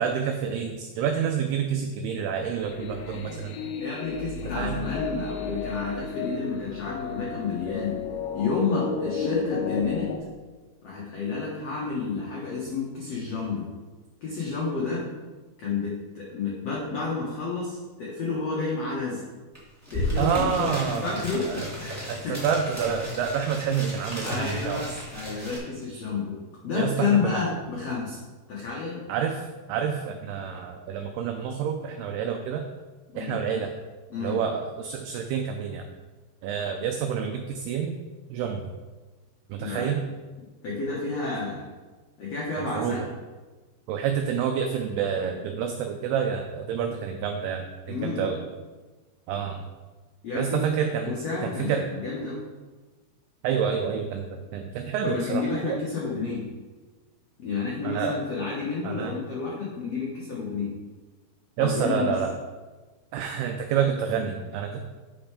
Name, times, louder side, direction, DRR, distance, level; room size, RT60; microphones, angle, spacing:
voice 1, 0.0-3.6 4.6-4.8 20.2-21.7 22.1-25.0 26.7-27.4 29.1-29.4 29.7-32.6 33.2-33.7 34.2-35.8 36.4-38.0 38.3-38.7 39.5-40.0 42.8-43.0 43.9-48.4 49.3-49.6 50.3-51.8 53.4-55.8 57.8-58.2 58.8-59.1 61.6-62.3 63.1-64.8, right 7 dB, 80° right, 4 dB, 2.3 m, -28 dB
sound 1, 2.6-10.2, left 5 dB, 90° left, 2.9 m, -33 dB
voice 2, 3.8-8.0 8.3-10.1 10.8-13.7 14.2-15.1 15.6-19.2 19.9-22.4 24.2-26.3 26.6-28.2 28.5-29.0 33.1-33.4 34.1-34.4 39.6-39.9 40.6-41.7 42.2-43.1 47.9-48.3 50.2-50.6 51.1-52.4 55.0-56.4 57.4-60.7 61.6-62.2, left 4 dB, 70° left, -5 dB, 1.5 m, -30 dB
sound 2, 19.5-19.6 19.8-25.6, equal, 15° right, 0.5 m, -34 dB
8.1 x 5.6 x 5.0 m, 1.3 s
omnidirectional pair, 5.1 m